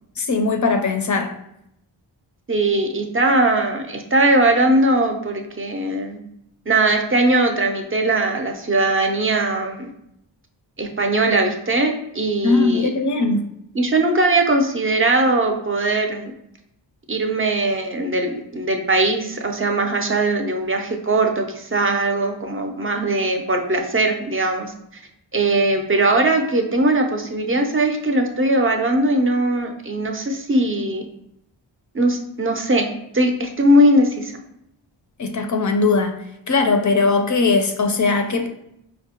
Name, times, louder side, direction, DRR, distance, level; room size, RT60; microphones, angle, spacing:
voice 1, 0.2-1.3 12.4-13.5 35.2-38.5, left 3 dB, 40° left, 5 dB, 0.4 m, -20 dB
voice 2, 2.5-6.2 6.7-9.9 10.8-12.9 13.7-16.3 17.1-25.0 25.3-31.1 31.9-32.9 33.1-34.3, right 2 dB, 30° right, 4 dB, 0.5 m, -20 dB
4.4 x 2.1 x 2.8 m, 0.78 s
wide cardioid pair, 65°, 47 cm